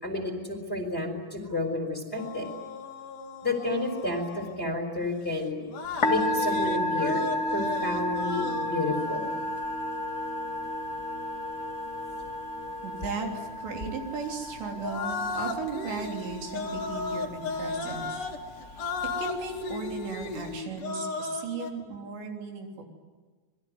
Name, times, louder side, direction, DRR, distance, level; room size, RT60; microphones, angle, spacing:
voice 1, 0.0-2.5 3.4-5.7 6.0-9.3, left 2 dB, 15° left, 4 dB, 3.3 m, -31 dB
sound 1, 2.2-4.6 5.6-13.5 14.7-21.7, left 4 dB, 55° left, 3.2 m, -37 dB
Musical instrument, 5.8-20.6, equal, 35° left, 1.1 m, -33 dB
voice 2, 12.8-18.2 18.6-18.9 19.2-22.8, right 4 dB, 85° right, 1 dB, 5.7 m, -36 dB
27.0 x 21.5 x 9.7 m, 1.4 s
omnidirectional pair, 4.9 m